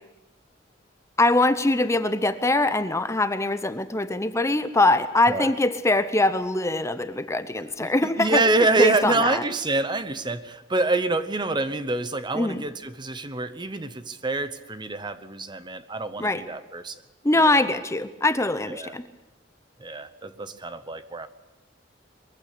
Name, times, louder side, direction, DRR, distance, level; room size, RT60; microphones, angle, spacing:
voice 1, 1.2-8.4 8.8-9.4 12.3-12.6 16.2-16.4 17.2-19.0, left 2 dB, 15° left, 11 dB, 0.7 m, -22 dB
voice 2, 7.8-17.0 17.3-17.6 18.7-19.0 19.8-21.3, right 2 dB, 25° right, 12 dB, 0.9 m, -26 dB
22.0 x 15.0 x 8.6 m, 1.1 s
head